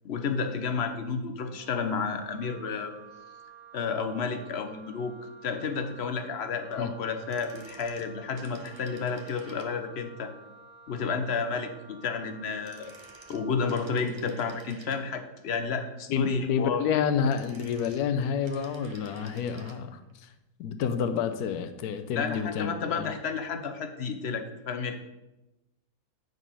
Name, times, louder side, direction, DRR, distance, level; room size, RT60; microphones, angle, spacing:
voice 1, 0.0-2.9 3.7-5.1 5.4-10.3 10.9-12.9 13.3-16.8 22.2-25.0, left 5 dB, 55° left, 7 dB, 0.8 m, -31 dB
Wind instrument woodwind instrument, 1.5-14.0, right 3 dB, 70° right, 1.5 m, -52 dB
sound 1, 7.2-10.0 12.4-15.3 17.0-19.8 20.1-20.2, right 3 dB, 35° right, 0.5 m, -52 dB
voice 2, 16.1-20.3 20.6-23.1, left 7 dB, 80° left, 9 dB, 1.2 m, -29 dB
9.2 x 4.1 x 5.4 m, 1.0 s
omnidirectional pair, 1.7 m